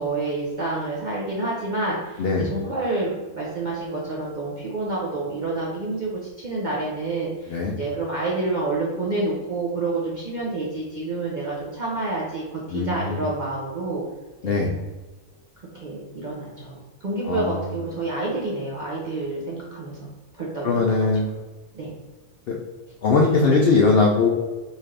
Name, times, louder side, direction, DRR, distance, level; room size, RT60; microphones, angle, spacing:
voice 1, 0.0-6.1 6.4-14.0 14.4-14.6 15.7-20.0 20.4-20.8 21.7-21.9 23.5-23.6, right 2 dB, 50° right, -5 dB, 0.5 m, -28 dB
voice 2, 12.7-13.3 14.4-14.8 17.2-17.7 20.6-21.3 22.5-22.6 23.0-24.3, left 4 dB, 75° left, 0 dB, 0.5 m, -20 dB
4.0 x 2.4 x 3.2 m, 1.2 s
omnidirectional pair, 1.5 m